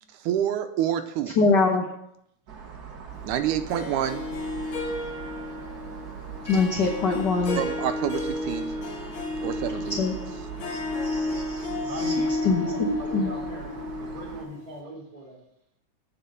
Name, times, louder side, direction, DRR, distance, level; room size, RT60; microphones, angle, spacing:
voice 1, 0.2-1.4 3.2-4.5 7.6-8.7 9.4-10.0, right 10 dB, 80° right, 9 dB, 2.2 m, -28 dB
voice 2, 1.4-1.9 6.5-7.6 10.0-10.1 10.7-12.1 12.4-13.3, left 4 dB, 80° left, 1 dB, 0.9 m, -24 dB
sound 1, 2.5-14.5, right 7 dB, 65° right, 0.9 m, -41 dB
Harp, 3.7-14.8, left 2 dB, 55° left, 1.8 m, -32 dB
voice 3, 11.8-15.4, right 1 dB, 15° right, -1 dB, 1.5 m, -40 dB
8.5 x 5.9 x 6.9 m, 0.77 s
omnidirectional pair, 3.6 m